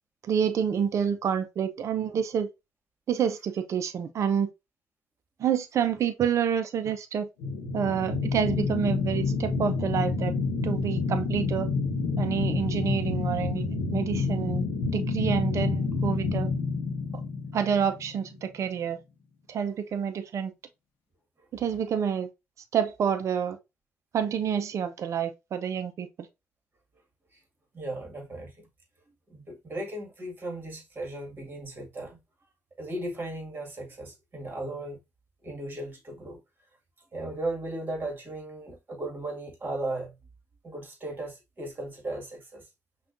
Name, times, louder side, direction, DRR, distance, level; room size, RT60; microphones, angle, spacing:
voice 1, 0.3-2.5 3.1-4.5 5.4-7.3 7.7-10.3 10.6-11.7 12.2-13.6 13.9-14.6 14.9-16.5 17.5-19.0 19.5-20.5 21.5-22.3 22.7-23.6 24.1-26.1, right 8 dB, 55° right, 0.6 m, -28 dB
sound 1, 7.4-18.3, left 4 dB, 90° left, 0.8 m, -28 dB
voice 2, 27.7-28.7 29.3-32.2 32.8-35.0 35.4-36.4 37.1-40.1 40.6-42.7, right 2 dB, 35° right, 1.9 m, -36 dB
5.6 x 2.4 x 2.5 m
supercardioid pair, 55°, 6 cm